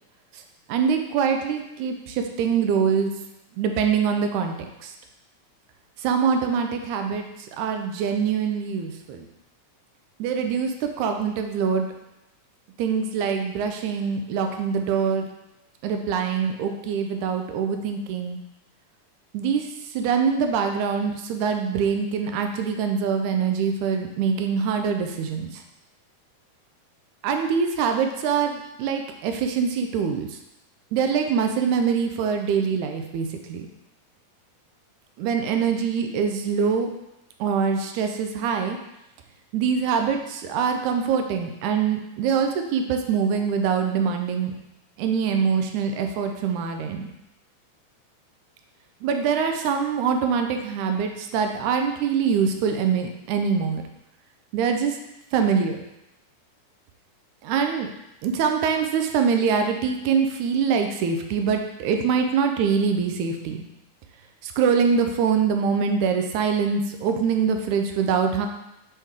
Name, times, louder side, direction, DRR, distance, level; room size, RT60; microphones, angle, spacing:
voice 1, 0.7-3.1 3.6-4.5 4.8-4.9 6.0-7.3 7.6-9.3 10.2-11.9 12.8-15.3 15.8-18.4 19.3-19.7 20.0-25.5 27.2-30.3 30.9-33.7 35.2-36.9 37.4-38.8 39.5-44.5 45.0-47.0 49.0-53.8 54.5-54.9 55.3-55.9 57.4-57.9 58.2-63.7 64.4-68.5, right 6 dB, 80° right, 5 dB, 1.9 m, -24 dB
8.3 x 3.3 x 3.6 m, 0.88 s
omnidirectional pair, 3.6 m